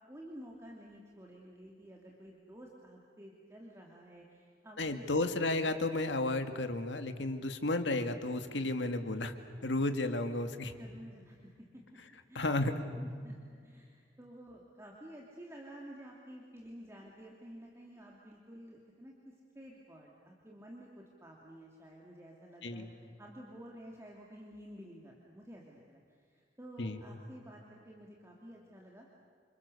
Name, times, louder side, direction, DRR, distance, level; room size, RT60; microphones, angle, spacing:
voice 1, 0.1-5.0 10.6-11.8 12.3-12.5 13.0-29.2, equal, 15° right, -2 dB, 2.8 m, -52 dB
voice 2, 4.8-9.3 9.6-10.7 12.4-12.8 22.6-22.9 26.8-27.0, left 2 dB, 90° left, 7 dB, 2.0 m, -33 dB
29.0 x 27.5 x 6.9 m, 2.1 s
head